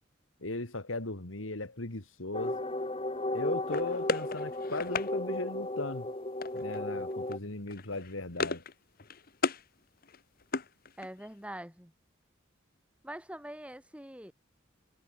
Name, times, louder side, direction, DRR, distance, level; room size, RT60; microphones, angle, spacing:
voice 1, 0.4-2.5 3.3-6.1 6.5-8.6, left 2 dB, 90° left, 2.8 m, -37 dB
sound 1, 2.3-7.4, left 1 dB, 30° left, 1.7 m, -35 dB
sound 2, 3.7-5.1 6.4-6.8 7.1-7.4 7.7-8.7 9.0-9.6 10.0-11.3, left 4 dB, 45° left, 1.3 m, -35 dB
voice 2, 11.0-11.9 13.0-14.3, right 1 dB, 5° right, 7.9 m, -44 dB
head